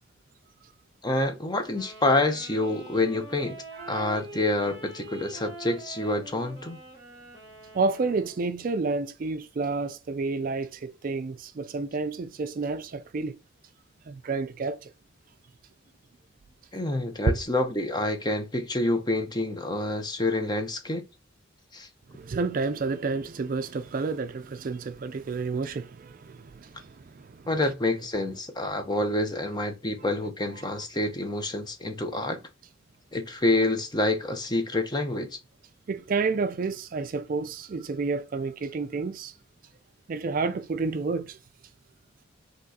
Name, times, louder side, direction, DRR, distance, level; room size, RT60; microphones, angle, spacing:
voice 1, 1.0-6.8 16.7-21.1 21.7-21.9 27.5-32.4 33.1-35.4, left 2 dB, 20° left, 0.7 m, -27 dB
Wind instrument woodwind instrument, 1.7-8.6, right 2 dB, 15° right, 2.7 m, -44 dB
voice 2, 7.7-13.4 14.1-14.9 17.3-17.4 22.1-27.5 30.8-30.9 35.9-39.3 40.1-41.4, right 4 dB, 45° right, 0.4 m, -30 dB
5.8 x 3.0 x 2.8 m
head